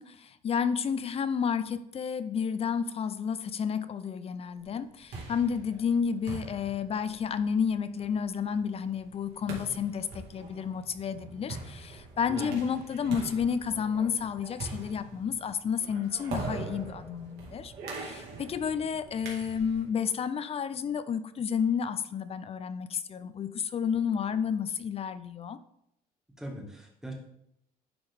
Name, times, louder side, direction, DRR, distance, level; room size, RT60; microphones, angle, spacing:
voice 1, 0.0-17.7 18.0-25.6, left 7 dB, 35° left, 13 dB, 0.5 m, -31 dB
sound 1, 4.8-19.9, right 3 dB, 75° right, 2.1 m, -42 dB
voice 2, 12.3-12.6 26.4-27.1, equal, 5° right, -1 dB, 1.7 m, -40 dB
10.5 x 3.6 x 3.5 m, 0.78 s
cardioid pair, 110°, 17 cm